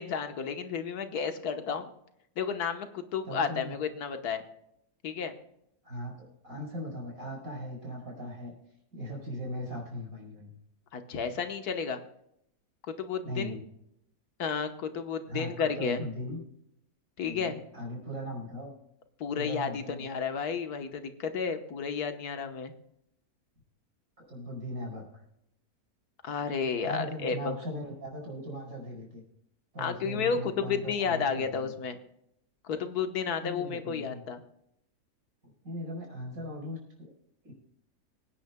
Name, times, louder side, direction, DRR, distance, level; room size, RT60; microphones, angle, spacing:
voice 1, 0.0-1.9 2.4-4.4 5.0-5.3 10.9-12.0 13.0-13.6 14.4-16.0 17.2-17.6 19.2-22.7 26.2-27.5 29.8-32.0 32.6-34.4, left 6 dB, 85° left, 8 dB, 1.6 m, -32 dB
voice 2, 3.3-3.7 5.8-8.6 8.9-10.5 13.2-13.6 15.3-16.4 17.2-18.7 19.3-20.1 24.3-25.1 26.8-29.2 29.7-31.7 33.4-34.2 35.4-37.1 37.4-37.5, equal, 65° right, -1 dB, 5.5 m, -39 dB
25.0 x 9.8 x 2.2 m, 0.76 s
omnidirectional pair, 1.6 m